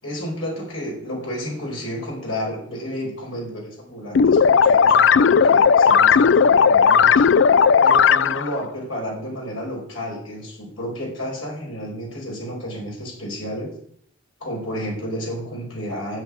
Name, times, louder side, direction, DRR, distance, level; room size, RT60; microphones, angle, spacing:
voice 1, 0.0-7.3 7.8-13.7 14.4-16.2, equal, 85° left, -2 dB, 5.5 m, -31 dB
sound 1, 4.1-8.6, left 6 dB, 65° left, 0.4 m, -15 dB
10.5 x 7.8 x 8.8 m, 0.65 s
head